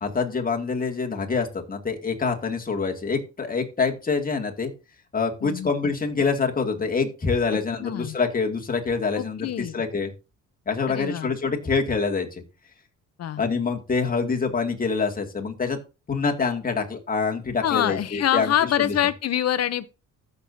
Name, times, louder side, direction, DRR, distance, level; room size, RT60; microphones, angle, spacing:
voice 1, 0.0-4.7 5.1-10.1 10.7-12.4 13.4-15.8 16.1-18.9, left 4 dB, 30° left, 2.1 m, -26 dB
voice 2, 5.4-5.9 7.8-8.2 9.2-9.7 10.9-11.3 13.2-13.4 17.6-20.0, left 11 dB, 55° left, 0.7 m, -25 dB
14.5 x 6.8 x 2.7 m
cardioid pair, 90°, 30 cm